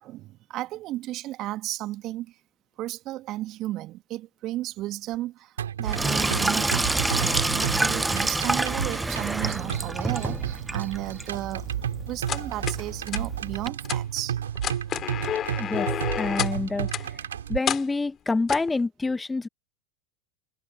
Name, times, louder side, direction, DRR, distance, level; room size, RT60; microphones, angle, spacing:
voice 1, 0.0-2.3 2.8-6.8 7.1-11.7 12.1-14.4 14.6-14.8, right 16 dB, 45° right, 2.1 m, -34 dB
sound 1, 5.6-17.6, right 9 dB, 75° right, 3.0 m, -32 dB
Sink (filling or washing), 5.8-13.7, right 2 dB, 10° right, 0.6 m, -28 dB
sound 2, 12.3-12.8 13.1-13.2 13.8-14.0 14.6-16.6 16.9-17.1 17.7-17.9 18.5-18.7, left 10 dB, 35° left, 4.2 m, -29 dB
voice 2, 15.4-17.2 17.5-19.5, left 3 dB, 10° left, 1.1 m, -28 dB
figure-of-eight pair, 85°, 0 cm